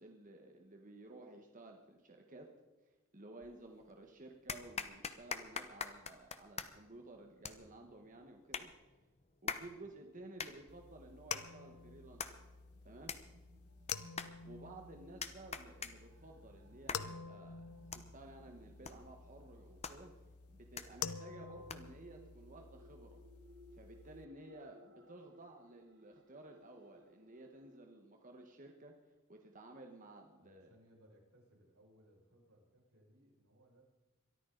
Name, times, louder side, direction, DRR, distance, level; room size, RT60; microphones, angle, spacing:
voice 1, 0.0-2.5 3.1-8.7 9.4-12.4 12.8-13.1 14.4-17.6 17.9-20.1 20.5-23.2 23.7-28.9 29.3-30.7, right 2 dB, 35° right, 3 dB, 1.3 m, -54 dB
sound 1, 3.4-4.0 4.5-22.1, left 6 dB, 30° left, 0.9 m, -47 dB
sound 2, 10.7-24.2, left 7 dB, 90° left, 0.8 m, -49 dB
sound 3, 12.3-27.8, equal, 55° right, 1.0 m, -66 dB
voice 2, 30.3-33.8, equal, 85° right, -2 dB, 5.8 m, -66 dB
23.0 x 13.5 x 3.9 m, 1.1 s
head